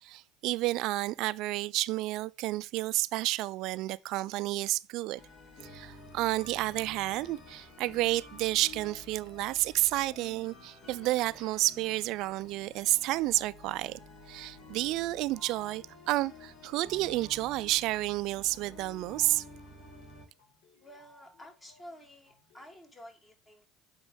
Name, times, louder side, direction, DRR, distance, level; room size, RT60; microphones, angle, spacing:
voice 1, 0.0-5.2 5.6-14.0 14.3-19.4, right 18 dB, 65° right, 0.4 m, -30 dB
sound 1, 5.1-20.3, left 2 dB, 55° left, 3.9 m, -51 dB
sound 2, 13.7-22.7, left 2 dB, 75° left, 4.1 m, -63 dB
voice 2, 20.8-23.7, equal, 20° left, 2.7 m, -51 dB
8.0 x 5.2 x 3.4 m
supercardioid pair, 85°, 0 cm